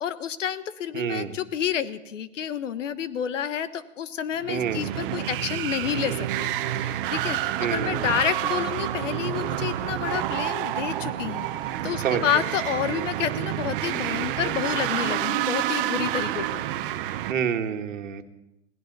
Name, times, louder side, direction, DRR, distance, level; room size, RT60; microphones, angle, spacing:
voice 1, 0.0-6.5 6.8-11.5 11.8-16.6, left 9 dB, 70° left, 15 dB, 1.2 m, -29 dB
voice 2, 0.9-1.3 4.5-4.9 7.6-8.2 12.0-12.2 17.3-18.2, right 8 dB, 80° right, 6 dB, 1.7 m, -28 dB
sound 1, 4.4-17.3, right 12 dB, 45° right, 1.0 m, -29 dB
21.0 x 16.5 x 4.0 m, 0.90 s
hypercardioid pair, 145°, 38 cm